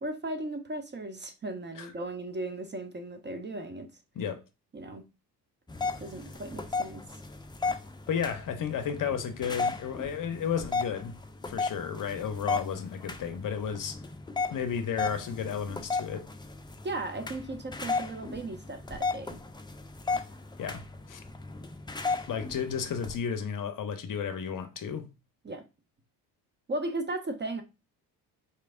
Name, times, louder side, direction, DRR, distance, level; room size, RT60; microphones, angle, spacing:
voice 1, 0.0-3.9 4.7-5.0 6.0-7.2 16.8-19.4 25.4-25.6 26.7-27.6, right 2 dB, 20° right, 0.8 m, -36 dB
sound 1, 5.7-23.2, left 4 dB, 10° left, 0.5 m, -35 dB
voice 2, 8.1-11.2 11.5-14.0 14.5-16.3 20.6-21.2 22.3-25.1, left 7 dB, 40° left, 0.7 m, -33 dB
4.4 x 3.3 x 2.5 m
hypercardioid pair, 55°, 48 cm